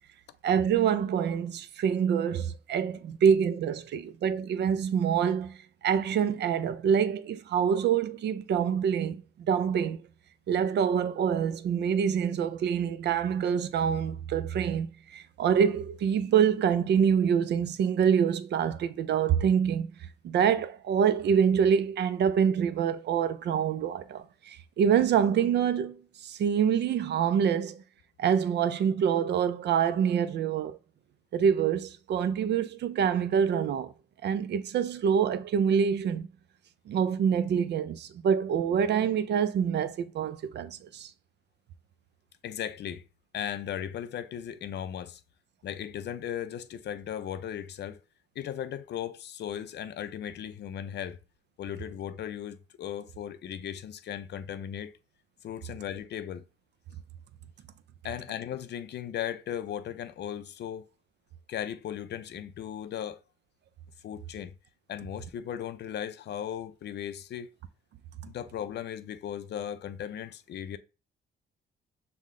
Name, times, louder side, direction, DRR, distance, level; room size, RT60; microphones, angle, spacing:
voice 1, 0.4-5.6 5.8-9.2 9.5-10.0 10.5-19.9 20.2-27.8 28.2-30.8 31.3-33.9 34.2-36.3 36.9-41.1, right 8 dB, 60° right, 0.4 m, -26 dB
voice 2, 42.4-43.1 43.3-45.2 45.6-48.0 48.4-51.2 51.6-54.9 55.4-56.4 58.0-60.9 61.5-63.2 64.0-64.5 64.9-67.5 68.3-70.8, left 9 dB, 60° left, 0.4 m, -37 dB
5.6 x 2.1 x 3.6 m
cardioid pair, 90°, 20 cm